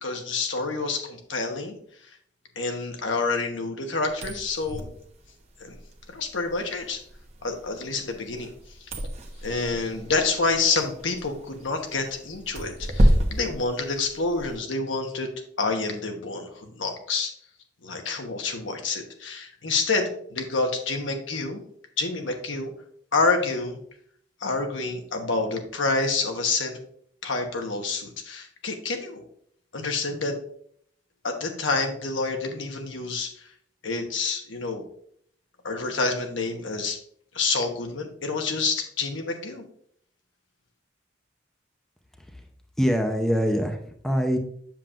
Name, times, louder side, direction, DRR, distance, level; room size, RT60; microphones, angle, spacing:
voice 1, 0.0-1.7 2.6-4.9 5.6-5.8 6.1-7.0 7.4-8.5 9.4-15.3 15.6-17.3 17.8-21.6 22.0-22.7 23.1-23.8 24.4-26.8 27.2-29.2 29.7-30.3 31.2-33.3 33.8-34.8 35.6-37.0 37.3-39.6, left 3 dB, 80° left, 4 dB, 1.2 m, -28 dB
sound 1, 4.1-14.6, equal, 35° right, 0.9 m, -29 dB
voice 2, 42.8-44.4, equal, ahead, 4 dB, 0.6 m, -24 dB
7.5 x 7.2 x 2.5 m, 0.63 s
head